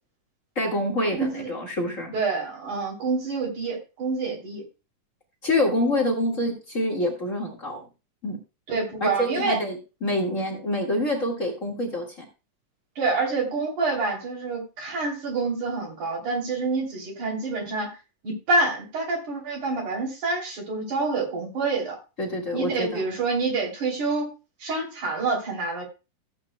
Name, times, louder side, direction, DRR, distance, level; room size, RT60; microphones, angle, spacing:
voice 1, 0.5-2.1 5.4-7.8 8.2-8.4 9.0-12.2 22.2-23.0, left 1 dB, 30° left, -1 dB, 1.5 m, -26 dB
voice 2, 1.2-1.5 2.1-4.6 8.7-9.6 13.0-17.9 18.2-22.0 22.5-24.3 24.6-25.8, right 3 dB, 65° right, -2 dB, 4.4 m, -27 dB
15.0 x 8.6 x 2.2 m, 0.30 s
omnidirectional pair, 3.9 m